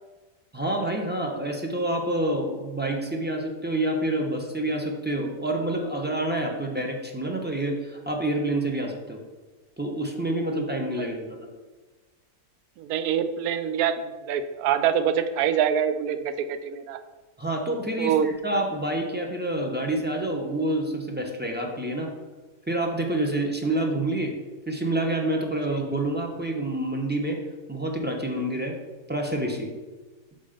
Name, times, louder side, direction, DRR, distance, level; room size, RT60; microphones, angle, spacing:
voice 1, 0.5-9.2 9.8-11.5 17.4-22.1 22.7-24.3 24.7-27.4 27.7-28.7 29.1-29.7, right 1 dB, 15° right, 1 dB, 0.4 m, -28 dB
voice 2, 12.8-17.0 18.0-18.3 25.7-25.8, right 8 dB, 80° right, 9 dB, 1.0 m, -25 dB
5.7 x 5.1 x 5.0 m, 1.2 s
omnidirectional pair, 1.6 m